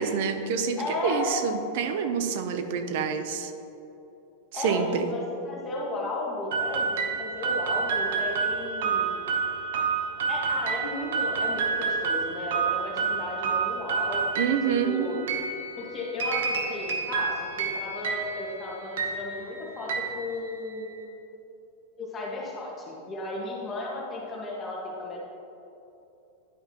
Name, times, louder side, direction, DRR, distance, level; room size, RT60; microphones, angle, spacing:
voice 1, 0.0-3.5 4.6-5.1 14.4-15.1, right 6 dB, 60° right, 8 dB, 0.7 m, -27 dB
voice 2, 0.8-1.4 4.5-9.1 10.3-14.2 14.8-15.2 15.8-20.9 22.0-25.2, left 2 dB, 20° left, -4 dB, 1.6 m, -34 dB
puppet music box recreated, 6.5-21.0, right 5 dB, 80° right, 1.0 m, -29 dB
11.0 x 5.5 x 3.0 m, 2.9 s
supercardioid pair, 145°, 0 cm